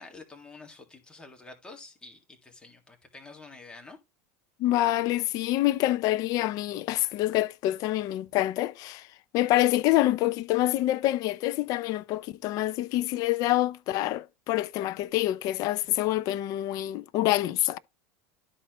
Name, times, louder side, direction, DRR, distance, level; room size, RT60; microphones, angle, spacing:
voice 1, 0.0-4.0, left 3 dB, 10° left, 1.8 m, -48 dB
voice 2, 4.6-9.1 9.3-17.8, left 15 dB, 55° left, 0.6 m, -26 dB
12.5 x 4.3 x 3.0 m
supercardioid pair, 115°, 8 cm